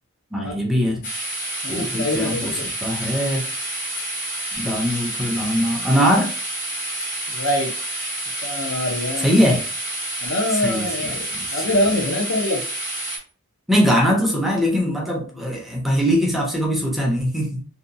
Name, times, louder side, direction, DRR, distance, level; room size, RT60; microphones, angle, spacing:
voice 1, 0.3-1.0 1.7-2.5 2.8-3.5 4.6-6.3 9.2-9.7 10.5-11.6 13.7-17.6, equal, ahead, 0.5 m, -21 dB
sound 1, 1.0-13.2, right 1 dB, 40° left, 0.7 m, -29 dB
voice 2, 1.6-2.6 7.3-7.7 8.4-9.3 10.2-12.6 15.4-15.5, left 1 dB, 70° left, 0.7 m, -24 dB
2.7 x 2.2 x 2.6 m
head